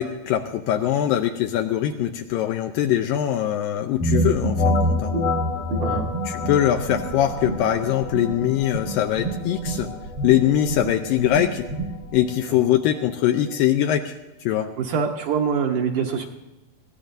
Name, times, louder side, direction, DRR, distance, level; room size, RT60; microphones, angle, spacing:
voice 1, 0.0-5.1 6.3-9.9 10.2-11.7 12.1-14.2 14.5-14.7, left 11 dB, 80° left, 4 dB, 2.2 m, -22 dB
sound 1, 4.0-13.6, left 2 dB, 60° left, 2.9 m, -28 dB
sound 2, 4.0-12.2, right 2 dB, 55° right, 1.3 m, -31 dB
voice 2, 14.8-16.3, right 6 dB, 70° right, 1 dB, 2.1 m, -24 dB
21.5 x 16.5 x 2.6 m, 1.0 s
omnidirectional pair, 4.3 m